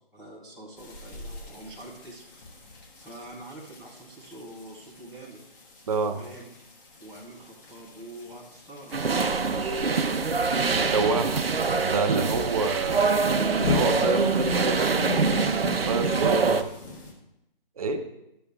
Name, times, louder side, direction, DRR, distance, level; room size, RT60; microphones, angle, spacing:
voice 1, 0.1-2.2 3.0-5.4 6.2-6.5 7.0-10.1 12.2-12.5, right 1 dB, ahead, -13 dB, 0.5 m, -45 dB
sound 1, 0.8-17.1, left 4 dB, 20° left, 1.2 m, -38 dB
voice 2, 5.9-6.2 10.9-11.4 11.8-13.2 13.6-15.1 15.7-16.7 17.8-18.0, right 4 dB, 40° right, 6 dB, 0.9 m, -27 dB
sound 2, 8.9-16.6, right 4 dB, 80° right, 0.8 m, -24 dB
12.5 x 6.9 x 3.4 m, 0.88 s
figure-of-eight pair, 145°, 29 cm